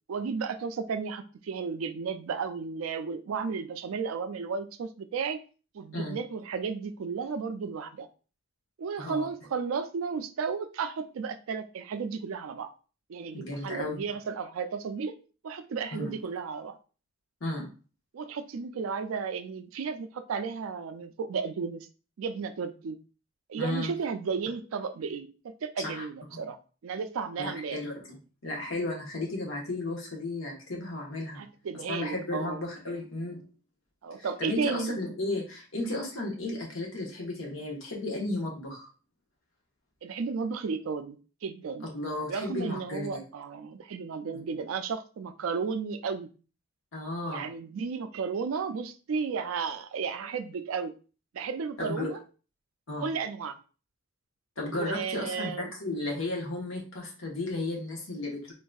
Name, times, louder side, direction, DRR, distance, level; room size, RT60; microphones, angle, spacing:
voice 1, 0.1-5.4 5.7-8.1 8.8-12.7 13.1-15.1 15.4-16.8 18.1-21.9 22.2-23.0 23.5-27.8 31.3-32.6 34.0-35.0 40.0-41.9 42.3-46.3 47.2-50.9 51.3-52.2 53.0-53.6 54.7-55.7, right 5 dB, 85° right, 10 dB, 0.4 m, -33 dB
voice 2, 13.3-14.0 15.9-16.1 17.4-17.7 23.6-23.9 25.8-26.0 27.4-28.2 28.4-31.4 31.9-33.4 34.2-38.9 41.9-43.2 46.9-47.4 51.8-52.1 52.9-53.1 54.6-58.5, left 2 dB, 80° left, -1 dB, 1.1 m, -34 dB
3.8 x 2.6 x 2.3 m, 0.36 s
head